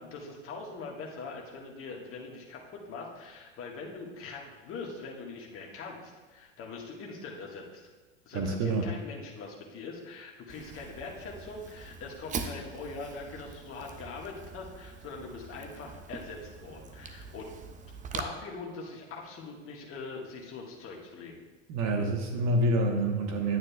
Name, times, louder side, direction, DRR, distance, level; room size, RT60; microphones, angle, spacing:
voice 1, 0.0-7.8 8.2-17.5 18.1-21.4, left 4 dB, 35° left, -1 dB, 1.6 m, -42 dB
voice 2, 8.3-8.9 21.7-23.6, right 1 dB, 45° right, 2 dB, 1.2 m, -27 dB
Fire, 10.5-18.2, right 5 dB, 20° right, 0.6 m, -43 dB
9.5 x 8.9 x 2.3 m, 1.3 s
hypercardioid pair, 90°, 37 cm